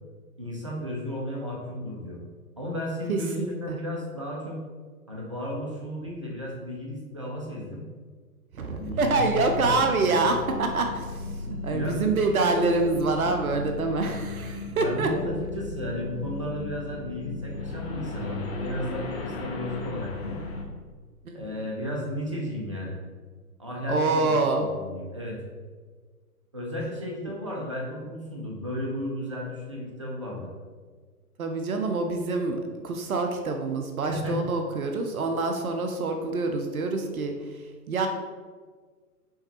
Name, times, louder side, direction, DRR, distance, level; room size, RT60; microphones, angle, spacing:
voice 1, 0.4-2.2 2.6-4.6 5.1-7.9 8.7-9.7 11.6-12.1 14.7-20.4 21.3-23.0 23.6-25.4 26.5-30.5 34.1-34.4, left 1 dB, 20° right, -3 dB, 0.4 m, -34 dB
voice 2, 3.1-3.8 8.5-15.1 21.3-21.5 23.9-24.7 27.2-27.3 31.4-37.3 37.9-38.1, right 3 dB, 65° right, 4 dB, 0.7 m, -26 dB
sound 1, 9.0-20.6, left 2 dB, 40° left, 0.7 m, -35 dB
5.6 x 3.1 x 2.9 m, 1.5 s
figure-of-eight pair, 125°, 47 cm